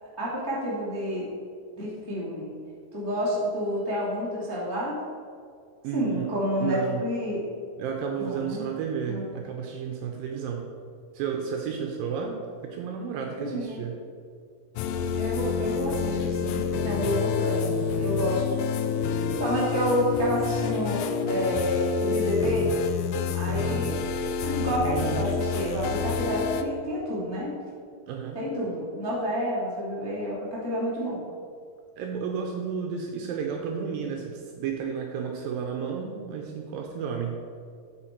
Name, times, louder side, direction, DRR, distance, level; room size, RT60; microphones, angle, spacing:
voice 1, 0.0-1.3 1.7-2.5 2.9-5.0 5.9-7.4 8.2-8.6 9.0-9.2 13.4-13.8 15.2-18.5 19.1-22.7 23.3-27.5 28.3-31.2, equal, 15° left, -9 dB, 1.0 m, -29 dB
voice 2, 5.8-6.3 6.6-7.0 7.8-10.7 11.1-14.0 23.5-23.8 24.8-25.2 28.1-28.4 32.0-37.4, right 7 dB, 75° right, 2 dB, 2.2 m, -32 dB
sound 1, 14.8-26.6, left 6 dB, 85° left, 2.0 m, -28 dB
8.2 x 6.4 x 4.5 m, 2.2 s
omnidirectional pair, 4.6 m